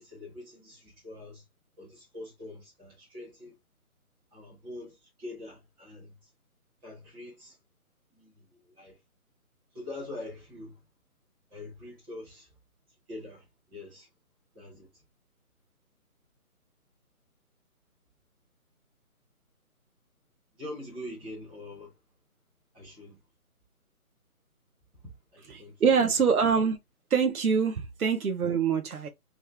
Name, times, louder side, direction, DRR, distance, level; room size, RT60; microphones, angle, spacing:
voice 1, 0.0-1.4 1.8-3.6 4.3-6.3 6.8-7.6 8.1-9.0 9.7-10.8 11.5-12.5 13.1-14.1 14.5-15.0 20.6-22.0 22.7-23.2 25.3-26.1, left 1 dB, 5° right, 1.0 m, -44 dB
voice 2, 25.5-26.8 27.1-29.1, right 6 dB, 75° right, 1.0 m, -25 dB
3.6 x 3.1 x 3.3 m
figure-of-eight pair, 160°, 44 cm